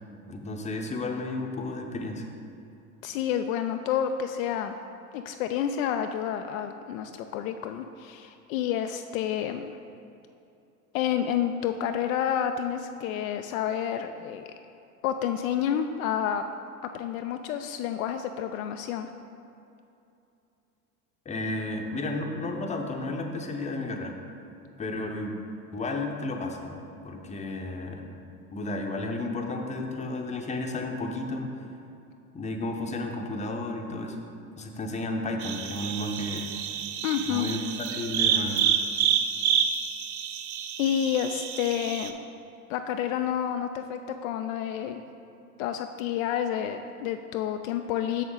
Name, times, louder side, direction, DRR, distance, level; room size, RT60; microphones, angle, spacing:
voice 1, 0.3-2.3 21.3-24.1 24.8-25.3 25.7-26.8 27.0-28.0 28.5-31.5 32.3-34.2 34.6-36.5 37.3-37.6 37.9-38.7, left 2 dB, 15° left, 3 dB, 0.7 m, -32 dB
voice 2, 3.0-4.8 5.1-9.8 10.9-14.5 15.0-16.4 16.9-19.1 37.0-37.5 40.8-42.1 42.7-45.0 45.6-48.2, left 9 dB, 60° left, 6 dB, 0.5 m, -29 dB
sound 1, 35.4-42.1, right 8 dB, 70° right, 0.7 m, -28 dB
6.6 x 6.3 x 3.8 m, 2.7 s
hypercardioid pair, 80°, 46 cm